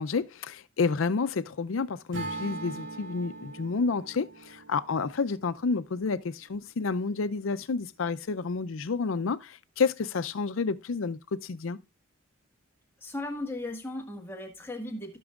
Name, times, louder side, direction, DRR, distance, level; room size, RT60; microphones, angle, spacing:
voice 1, 0.0-11.8, left 4 dB, 75° left, 0.5 m, -30 dB
Acoustic guitar / Strum, 2.1-6.3, right 2 dB, 60° right, 2.4 m, -41 dB
voice 2, 13.0-15.2, left 1 dB, 10° left, 1.5 m, -36 dB
16.5 x 6.1 x 2.4 m
head